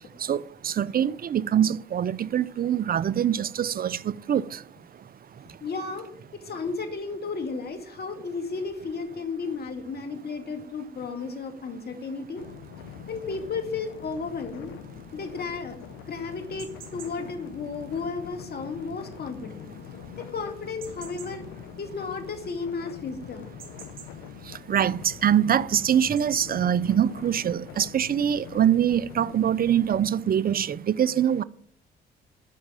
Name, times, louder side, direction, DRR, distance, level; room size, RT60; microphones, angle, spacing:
voice 1, 0.2-4.6 24.7-31.4, right 9 dB, 45° right, 0.6 m, -24 dB
voice 2, 5.6-12.4 13.1-14.7 15.1-15.8 16.1-19.7 20.2-21.5 21.8-23.5 23.9-24.1, left 4 dB, 50° left, 2.2 m, -33 dB
sound 1, 12.4-30.1, left 9 dB, 85° left, 0.8 m, -44 dB
sound 2, 13.0-26.2, right 8 dB, 75° right, 2.7 m, -52 dB
12.5 x 5.9 x 8.9 m
supercardioid pair, 55°, 21 cm